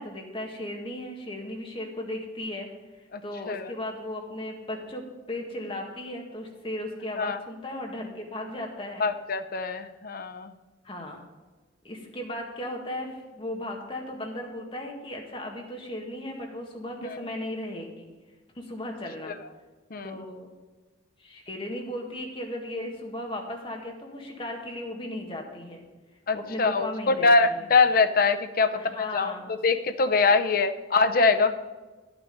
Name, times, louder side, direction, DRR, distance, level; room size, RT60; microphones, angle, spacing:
voice 1, 0.0-2.7 3.2-9.1 10.8-11.2 11.8-18.1 18.6-19.4 20.0-20.5 21.2-25.8 26.3-27.7 28.7-29.5, left 1 dB, 30° left, 1 dB, 1.7 m, -36 dB
voice 2, 9.0-10.5 19.9-20.1 26.3-29.3 29.6-31.5, left 4 dB, 50° left, 10 dB, 0.7 m, -23 dB
11.0 x 9.0 x 5.3 m, 1.3 s
head